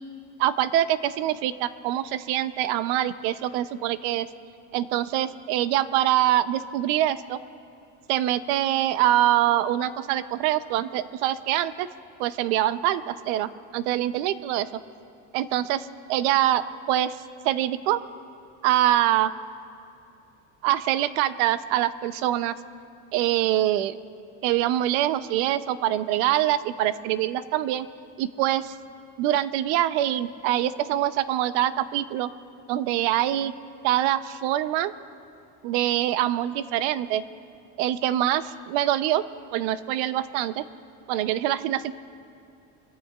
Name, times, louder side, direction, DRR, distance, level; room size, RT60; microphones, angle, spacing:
voice 1, 0.4-4.3 4.7-7.4 8.1-11.9 12.2-14.7 15.3-15.8 16.1-16.6 16.9-17.2 17.4-18.0 18.6-19.3 20.6-22.5 23.1-24.0 24.4-27.9 28.2-28.7 29.2-32.3 32.7-33.5 33.8-34.9 35.6-37.2 37.8-39.2 39.5-40.6 41.1-42.0, right 13 dB, 85° right, 14 dB, 0.7 m, -24 dB
25.0 x 15.0 x 2.4 m, 2.6 s
cardioid pair, 165°, 34 cm